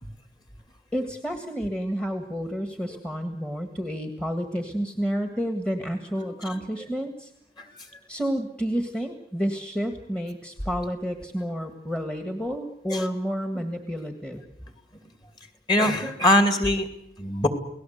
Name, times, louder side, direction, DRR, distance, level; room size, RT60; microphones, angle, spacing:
voice 1, 0.9-7.3 8.1-14.4, equal, 5° left, 6 dB, 1.7 m, -30 dB
voice 2, 15.7-16.9 17.2-17.5, left 1 dB, 25° left, 8 dB, 2.7 m, -22 dB
29.5 x 18.5 x 8.0 m, 0.77 s
head